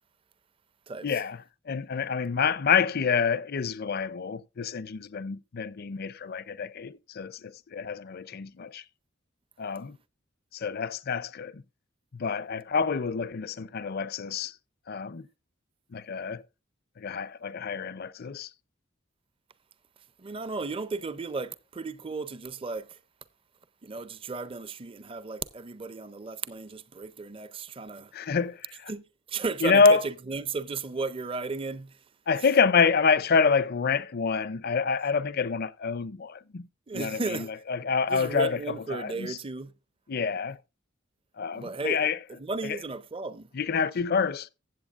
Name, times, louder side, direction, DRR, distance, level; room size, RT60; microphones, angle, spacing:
voice 1, 1.0-8.8 9.6-10.0 10.5-11.6 12.1-14.5 14.9-15.3 15.9-16.4 17.0-18.5 28.1-28.9 29.6-30.0 32.3-36.7 36.9-39.4 40.1-40.6 41.4-42.2 42.6-42.8 43.5-44.5, left 5 dB, 50° left, 0.5 m, -27 dB
voice 2, 20.2-23.0 23.8-28.1 28.9-29.0 29.3-31.9 36.9-37.5 38.1-39.7 41.5-42.0 42.4-43.5, right 4 dB, 25° right, 0.5 m, -34 dB
15.5 x 7.8 x 2.4 m
head